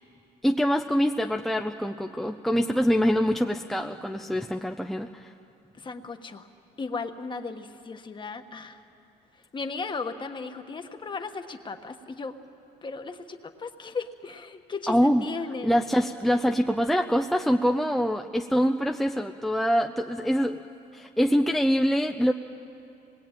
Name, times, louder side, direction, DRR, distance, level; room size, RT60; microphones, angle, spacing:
voice 1, 0.4-5.3 14.9-15.2 15.6-20.6 20.9-22.3, equal, ahead, 3 dB, 0.6 m, -24 dB
voice 2, 5.7-6.5 6.8-8.8 9.3-12.3 12.8-15.8, left 4 dB, 30° left, 6 dB, 1.4 m, -36 dB
26.5 x 20.5 x 9.0 m, 2.8 s
cardioid pair, 110°, 17 cm